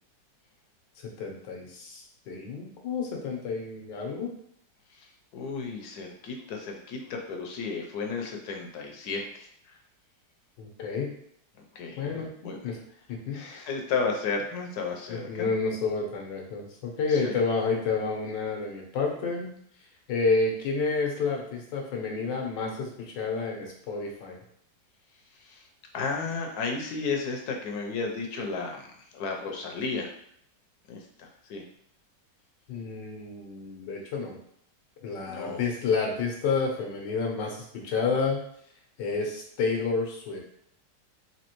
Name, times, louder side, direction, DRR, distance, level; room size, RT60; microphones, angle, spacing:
voice 1, 1.2-4.3 10.6-11.1 12.0-12.3 12.6-12.8 13.1-13.4 15.1-19.5 20.1-24.4 32.7-34.4 35.0-38.4 39.0-40.4, left 4 dB, 90° left, 1 dB, 1.5 m, -30 dB
voice 2, 5.3-9.5 11.7-12.0 12.4-12.6 13.3-15.5 17.1-17.3 25.4-25.6 25.9-30.1 30.9-31.6 35.2-35.7, left 4 dB, 70° left, 2 dB, 1.1 m, -33 dB
4.2 x 2.8 x 3.0 m, 0.67 s
omnidirectional pair, 1.9 m